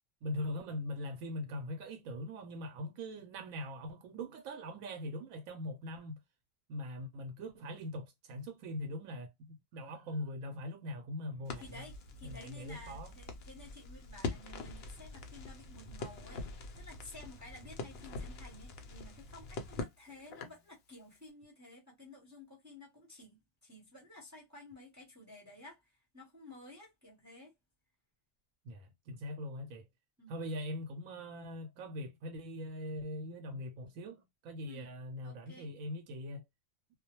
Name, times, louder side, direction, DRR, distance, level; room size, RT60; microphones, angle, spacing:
voice 1, 0.2-6.2 6.7-11.7 12.2-13.1 28.6-29.9 30.3-36.4, left 1 dB, 85° right, 1.0 m, -42 dB
Crackle, 11.4-20.7, left 3 dB, 60° left, 0.7 m, -44 dB
voice 2, 11.6-16.4 16.7-27.5 30.2-30.4 34.7-34.9 35.2-35.7, left 2 dB, 15° right, 0.7 m, -53 dB
2.3 x 2.1 x 2.8 m
omnidirectional pair, 1.4 m